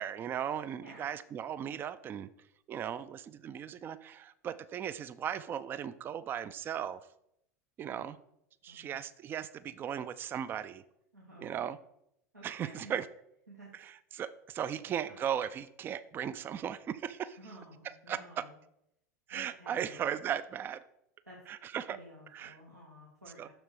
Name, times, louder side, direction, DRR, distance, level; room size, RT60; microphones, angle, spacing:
voice 1, 0.0-2.3 2.7-7.0 7.8-8.2 8.6-10.8 11.4-11.8 12.4-13.1 13.7-17.4 18.1-18.5 19.3-20.8 21.5-22.0 22.3-22.6 23.4-23.5, right 9 dB, 25° right, 15 dB, 0.3 m, -37 dB
voice 2, 11.1-11.5 12.3-12.9 13.5-13.7 15.1-15.2 17.4-18.5 19.3-20.1 21.3-21.4 21.9-23.5, equal, 90° right, -5 dB, 1.5 m, -52 dB
6.5 x 6.0 x 4.8 m, 0.78 s
figure-of-eight pair, 85°, 9 cm